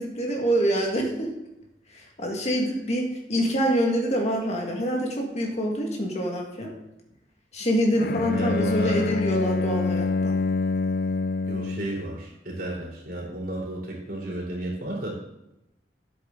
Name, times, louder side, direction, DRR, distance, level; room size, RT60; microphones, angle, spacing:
voice 1, 0.0-1.3 2.2-6.7 7.5-10.4, equal, 40° left, 0 dB, 1.9 m, -26 dB
Bowed string instrument, 7.9-12.0, left 3 dB, 55° left, 0.3 m, -26 dB
voice 2, 8.3-9.0 11.5-15.2, right 1 dB, 55° right, -4 dB, 3.5 m, -32 dB
9.9 x 8.1 x 3.9 m, 0.88 s
head